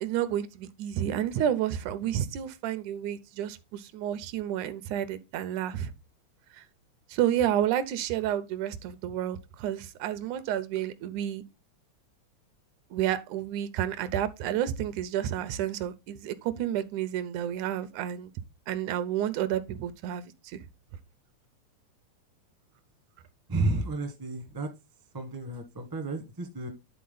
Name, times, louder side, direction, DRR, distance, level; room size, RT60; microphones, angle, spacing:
voice 1, 0.0-5.9 6.5-6.6 7.1-11.4 12.9-18.3 18.7-20.6, right 11 dB, 80° right, 2.1 m, -30 dB
voice 2, 23.5-24.7 25.1-26.7, right 2 dB, 25° right, 0.4 m, -31 dB
10.5 x 4.0 x 3.9 m
omnidirectional pair, 3.5 m